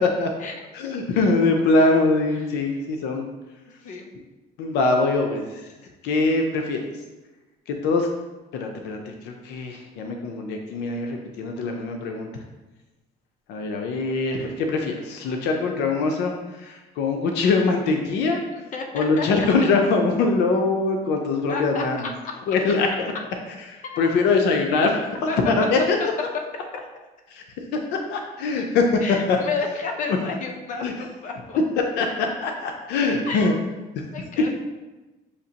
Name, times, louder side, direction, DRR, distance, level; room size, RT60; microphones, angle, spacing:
voice 1, 0.7-3.2 4.6-5.4 6.0-6.8 7.7-8.1 8.5-12.3 13.5-16.3 16.6-18.4 18.9-22.0 22.5-22.9 24.0-26.0 27.4-27.5 28.1-28.8 29.3-29.4 30.8-30.9 32.0-33.5 34.0-34.1, left 3 dB, 85° left, 3 dB, 0.5 m, -22 dB
voice 2, 18.5-19.3 21.5-22.3 23.8-24.3 25.3-25.4 26.5-26.7 29.0-31.6 33.3-33.6 34.1-34.6, left 4 dB, 50° left, 2 dB, 0.7 m, -32 dB
6.5 x 2.8 x 2.8 m, 1.1 s
cardioid pair, 110°, 17 cm